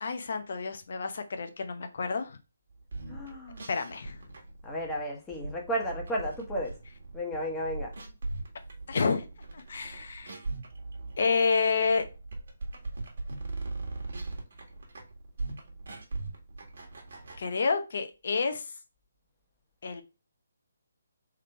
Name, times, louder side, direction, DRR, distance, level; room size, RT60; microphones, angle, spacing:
voice 1, 0.0-2.4 3.7-4.2 8.9-9.3 9.5-10.4 11.2-12.0 17.4-18.6 19.8-20.0, left 4 dB, 55° left, 8 dB, 0.8 m, -29 dB
sound 1, 2.8-17.4, right 3 dB, 60° right, 1.6 m, -40 dB
voice 2, 3.1-3.7 4.6-6.7 7.1-7.9, equal, 10° left, -1 dB, 1.3 m, -33 dB
3.7 x 3.3 x 4.4 m, 0.29 s
figure-of-eight pair, 150°, 0 cm